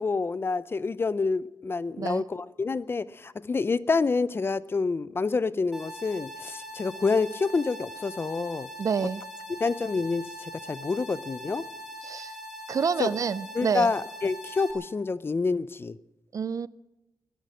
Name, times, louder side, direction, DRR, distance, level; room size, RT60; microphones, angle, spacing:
voice 1, 0.0-8.7 9.5-11.7 13.0-13.1 13.6-16.0, left 4 dB, 30° left, 0.5 m, -28 dB
sound 1, 5.7-14.7, equal, ahead, 5.4 m, -42 dB
voice 2, 8.8-9.2 12.0-12.4 12.7-13.9 16.3-16.7, right 6 dB, 50° right, 0.4 m, -28 dB
20.5 x 11.0 x 6.1 m
wide cardioid pair, 130°, 7 cm